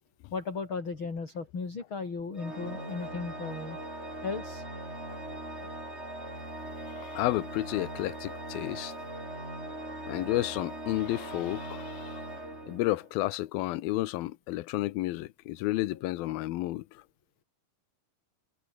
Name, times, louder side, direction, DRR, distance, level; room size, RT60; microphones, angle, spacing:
voice 1, 0.3-3.8 4.2-5.2 5.5-5.7 6.1-6.2 16.3-16.4, left 4 dB, 35° left, 4.7 m, -37 dB
Organ, 2.4-13.2, right 1 dB, 15° right, 7.8 m, -40 dB
voice 2, 6.8-8.9 10.1-12.2 12.7-17.0, left 17 dB, 85° left, 2.7 m, -31 dB
omnidirectional pair, 4.2 m